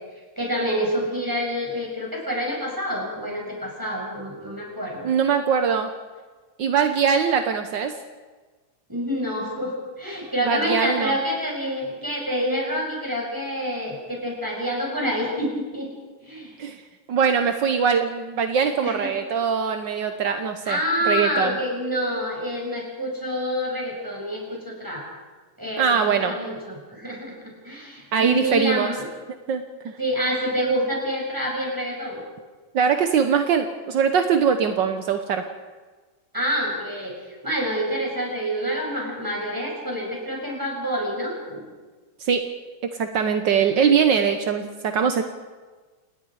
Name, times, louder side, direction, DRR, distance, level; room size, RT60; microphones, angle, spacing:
voice 1, 0.4-5.1 8.9-15.9 16.2-16.5 18.8-19.1 20.6-25.0 25.6-29.1 30.0-32.2 36.3-41.6, equal, 5° right, -2 dB, 6.5 m, -27 dB
voice 2, 5.0-5.9 6.6-7.9 10.5-11.1 16.6-16.8 17.1-20.8 21.0-21.6 25.8-26.3 28.1-28.9 29.5-29.9 32.7-35.4 42.2-42.5 42.9-45.2, right 6 dB, 70° right, 7 dB, 1.1 m, -22 dB
28.5 x 19.5 x 4.9 m, 1.3 s
omnidirectional pair, 3.4 m